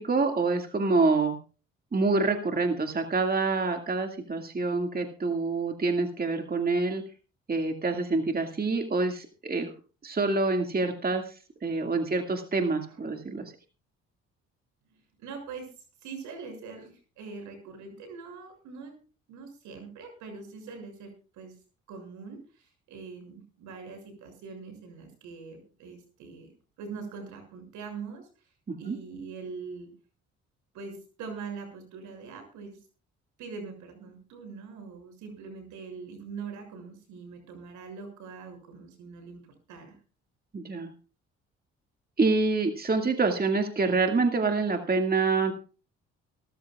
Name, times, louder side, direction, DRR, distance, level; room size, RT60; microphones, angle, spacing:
voice 1, 0.0-1.4 1.9-7.0 7.5-9.7 10.0-11.4 11.6-13.5 28.7-29.0 40.5-40.9 42.2-45.5, right 3 dB, 30° right, 5 dB, 2.1 m, -26 dB
voice 2, 12.9-13.2 14.9-15.7 16.0-19.0 19.3-21.5 21.9-26.5 26.8-28.3 28.8-29.9 30.7-32.8 33.4-40.0, right 5 dB, 80° right, 5 dB, 6.6 m, -43 dB
24.0 x 13.5 x 2.4 m, 0.36 s
supercardioid pair, 65°, 29 cm